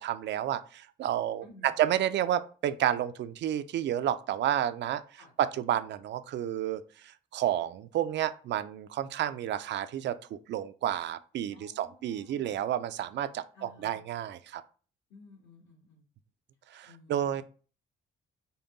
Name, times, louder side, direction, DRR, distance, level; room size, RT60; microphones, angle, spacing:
voice 1, 0.0-14.6 16.7-17.4, right 11 dB, 65° right, 12 dB, 0.4 m, -31 dB
voice 2, 1.4-1.8 5.2-5.3 11.5-12.5 13.5-14.0 15.1-16.1 16.9-17.4, left 2 dB, 65° left, 0 dB, 2.1 m, -55 dB
5.3 x 2.2 x 3.9 m, 0.38 s
cardioid pair, 90°, 20 cm